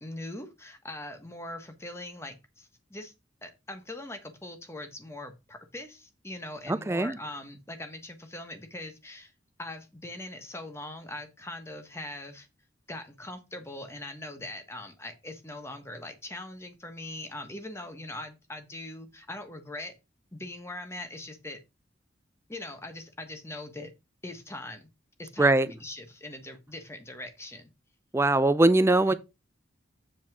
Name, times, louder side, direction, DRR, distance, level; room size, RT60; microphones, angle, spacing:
voice 1, 0.0-3.1 3.4-9.3 9.6-12.5 12.9-19.9 20.3-21.6 22.5-23.9 24.2-24.8 25.2-27.7 29.1-29.2, left 1 dB, 15° left, 1.2 m, -41 dB
voice 2, 6.7-7.2 25.4-25.7 28.1-29.1, right 2 dB, 15° right, 0.4 m, -21 dB
7.9 x 4.1 x 5.9 m
head